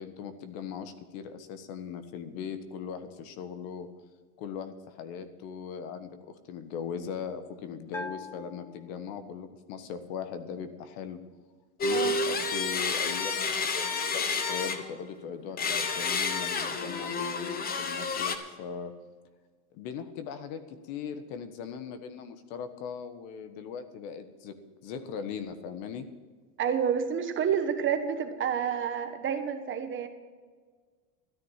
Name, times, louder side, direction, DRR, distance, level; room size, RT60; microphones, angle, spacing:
voice 1, 0.0-3.9 4.4-11.2 11.8-18.9 19.7-24.6 24.8-26.1, left 7 dB, 60° left, 10 dB, 1.4 m, -39 dB
Bell, 7.9-9.6, left 2 dB, 5° left, 0.6 m, -43 dB
sound 1, 11.8-15.1 15.6-18.4, left 4 dB, 20° left, 1.0 m, -30 dB
voice 2, 26.6-30.1, right 7 dB, 30° right, 7 dB, 1.3 m, -29 dB
13.5 x 10.0 x 5.7 m, 1.5 s
supercardioid pair, 135°, 41 cm